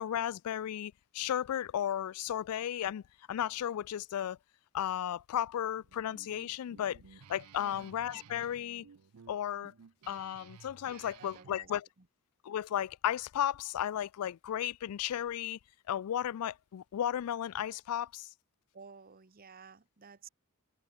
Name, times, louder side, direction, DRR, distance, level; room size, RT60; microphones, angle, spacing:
voice 1, 0.0-3.0 3.3-4.4 4.7-7.0 7.3-8.9 9.3-9.7 10.1-11.9 12.4-15.6 15.9-18.3, left 10 dB, 80° left, 0.3 m, -34 dB
Guitar, 5.8-11.5, right 6 dB, 85° right, 0.5 m, -56 dB
voice 2, 7.5-7.9 10.9-11.7 18.7-20.3, right 5 dB, 40° right, 1.0 m, -53 dB
head